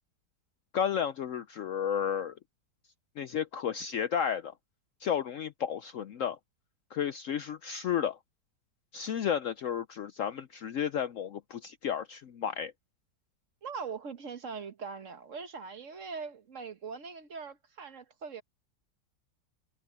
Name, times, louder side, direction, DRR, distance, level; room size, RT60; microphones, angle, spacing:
voice 1, 0.7-2.4 3.2-4.5 5.0-6.4 6.9-8.2 8.9-12.7, left 8 dB, 65° left, 0.8 m, -32 dB
voice 2, 13.6-18.4, right 5 dB, 50° right, 1.4 m, -41 dB
omnidirectional pair, 1.8 m